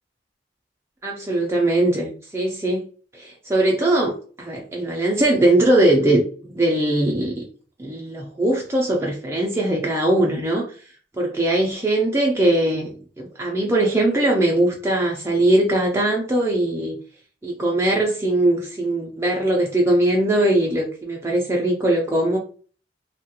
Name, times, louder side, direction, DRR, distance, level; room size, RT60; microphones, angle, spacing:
voice 1, 1.0-2.8 3.1-6.2 6.5-7.4 7.8-10.8 11.1-17.0 17.4-22.4, right 1 dB, 15° right, -1 dB, 0.4 m, -20 dB
2.8 x 2.3 x 2.8 m, 0.40 s
head